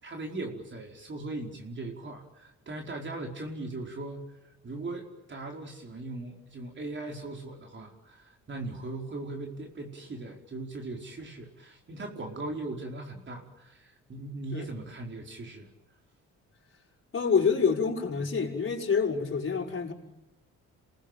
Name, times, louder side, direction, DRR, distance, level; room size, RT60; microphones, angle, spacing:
voice 1, 0.0-15.7, right 2 dB, 40° right, 1 dB, 4.8 m, -39 dB
voice 2, 17.1-19.9, left 5 dB, 45° left, 0 dB, 5.5 m, -27 dB
28.0 x 19.5 x 9.2 m, 0.97 s
cardioid pair, 90°, 30 cm